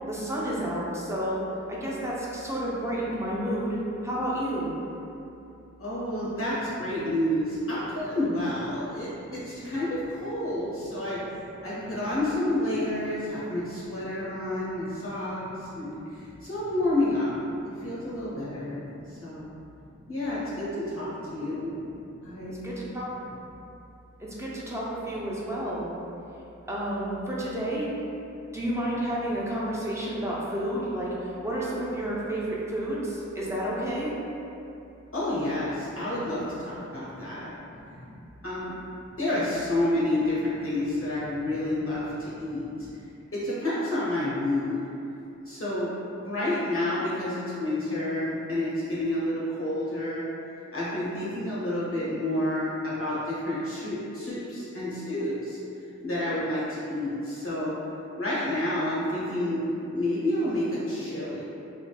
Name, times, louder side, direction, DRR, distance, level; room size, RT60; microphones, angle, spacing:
voice 1, 0.1-1.4 1.7-3.8 4.0-4.7 16.1-16.3 17.9-18.0 19.3-19.4 21.7-21.8 22.2-23.5 24.2-25.8 26.7-27.9 28.5-34.1 36.9-38.2 42.1-42.6, right 1 dB, 10° right, -7 dB, 0.6 m, -31 dB
voice 2, 5.8-11.2 11.6-17.3 17.8-18.8 19.1-19.5 20.1-21.7 22.2-22.7 35.1-37.5 38.4-38.8 39.2-42.7 43.3-44.8 45.5-45.9 46.2-50.2 50.7-55.6 56.0-57.8 58.2-61.4, left 1 dB, 45° left, -8 dB, 0.6 m, -29 dB
3.2 x 2.0 x 2.2 m, 2.8 s
cardioid pair, 50°, 30 cm